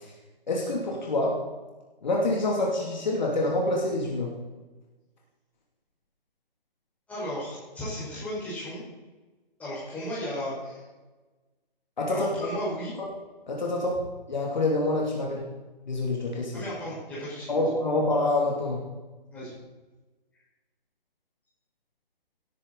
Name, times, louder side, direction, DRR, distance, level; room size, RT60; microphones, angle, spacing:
voice 1, 0.5-1.4 2.0-4.3 12.0-12.3 13.0-13.1 13.5-14.0 14.3-15.4 15.9-16.6 17.5-18.8, left 2 dB, 50° left, -2 dB, 2.6 m, -26 dB
voice 2, 7.1-8.8 9.6-10.8 12.1-12.9 16.5-17.6 19.3-19.5, equal, 5° left, -9 dB, 4.9 m, -35 dB
17.5 x 9.7 x 4.0 m, 1.2 s
figure-of-eight pair, 140°, 30 cm